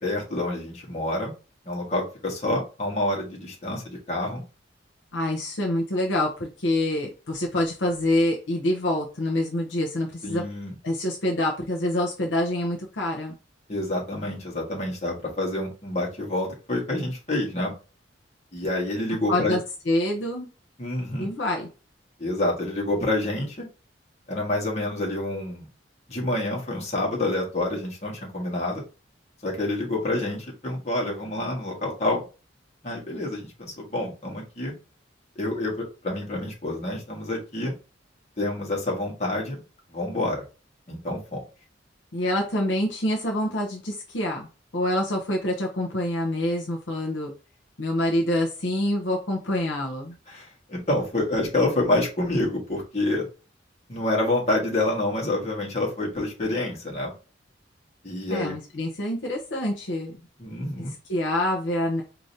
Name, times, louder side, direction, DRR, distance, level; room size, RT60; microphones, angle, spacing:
voice 1, 0.0-1.3 1.6-4.4 10.2-10.7 13.7-17.7 18.5-19.6 20.8-21.3 22.2-23.7 24.3-25.7 26.1-28.8 29.4-32.2 32.8-34.7 35.3-37.7 38.4-39.6 39.9-40.4 40.9-41.4 50.3-53.3 53.9-57.1 58.0-58.5 60.4-60.9, left 1 dB, 35° left, -2 dB, 1.6 m, -27 dB
voice 2, 5.1-10.4 10.8-13.3 19.3-19.6 19.9-20.5 21.2-21.7 42.1-44.5 44.7-47.3 47.8-50.2 58.3-60.1 60.8-62.0, left 1 dB, 70° left, 0 dB, 0.8 m, -26 dB
4.9 x 2.9 x 2.8 m, 0.33 s
head